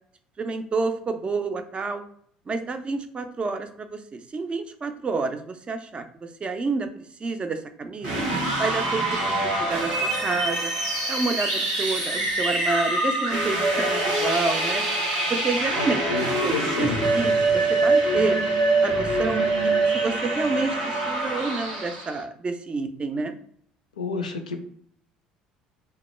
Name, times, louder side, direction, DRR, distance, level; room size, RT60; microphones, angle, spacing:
voice 1, 0.4-2.0 2.5-8.1 8.6-10.7 11.1-14.8 15.3-16.1 16.4-18.4 18.8-23.3, right 3 dB, 30° right, 7 dB, 0.4 m, -29 dB
sound 1, 8.0-22.2, right 2 dB, 75° right, 1.0 m, -24 dB
voice 2, 15.8-17.0 24.0-24.6, left 4 dB, 85° left, 6 dB, 0.4 m, -30 dB
2.2 x 2.0 x 3.0 m, 0.64 s
hypercardioid pair, 65°, 4 cm